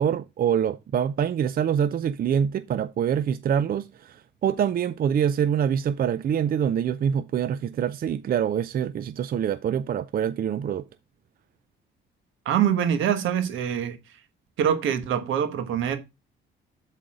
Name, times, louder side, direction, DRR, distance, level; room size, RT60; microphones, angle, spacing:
voice 1, 0.0-10.8, right 8 dB, 50° right, 0.5 m, -25 dB
voice 2, 12.4-14.0 14.6-16.0, right 9 dB, 80° right, 1.3 m, -24 dB
7.6 x 4.1 x 4.8 m
cardioid pair, 90°, 20 cm